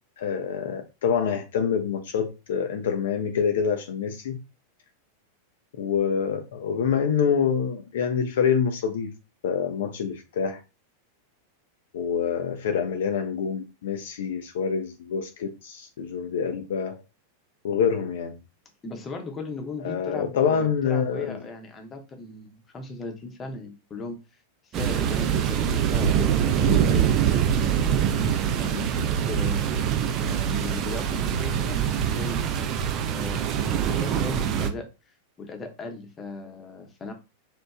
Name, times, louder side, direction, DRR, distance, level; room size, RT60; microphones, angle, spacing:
voice 1, 0.2-4.4 5.8-9.1 9.4-10.6 11.9-17.0 17.6-18.4 19.8-21.4, left 7 dB, 60° left, 0.3 m, -26 dB
voice 2, 18.8-27.5 28.6-29.6 30.2-32.8 33.1-33.6 33.9-37.1, left 3 dB, 20° left, 0.6 m, -38 dB
sound 1, 24.7-34.7, right 8 dB, 35° right, 0.4 m, -24 dB
2.9 x 2.1 x 2.3 m
figure-of-eight pair, 90°, 0 cm